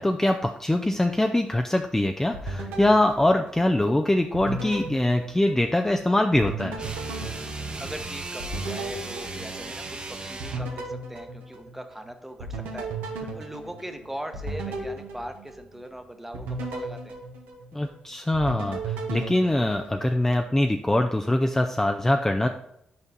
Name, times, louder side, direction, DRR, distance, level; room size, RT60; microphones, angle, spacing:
voice 1, 0.0-6.8 17.7-22.5, left 1 dB, 15° left, 4 dB, 0.4 m, -23 dB
sound 1, 2.3-3.9 4.3-6.0 6.3-10.0 10.4-12.0 12.4-15.9 16.3-18.0 18.3-20.3, right 2 dB, 90° right, 1.0 m, -36 dB
sound 2, 6.8-10.8, right 3 dB, 35° right, 0.9 m, -36 dB
voice 2, 7.8-9.8 10.2-17.2, right 1 dB, 5° right, 7 dB, 0.9 m, -40 dB
5.7 x 4.5 x 4.0 m, 0.78 s
supercardioid pair, 50°, 3 cm